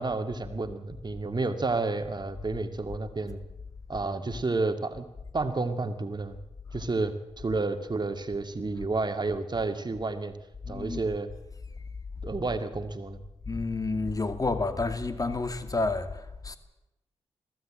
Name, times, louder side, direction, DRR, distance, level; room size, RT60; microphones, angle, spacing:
voice 1, 0.0-3.4 3.9-5.1 5.3-6.4 6.7-10.4 10.7-11.3 12.2-13.2, right 3 dB, 40° right, 2.2 m, -30 dB
voice 2, 10.6-11.0 13.5-16.6, left 3 dB, 35° left, 2.4 m, -30 dB
21.5 x 15.5 x 8.9 m
cardioid pair, 50°, 11 cm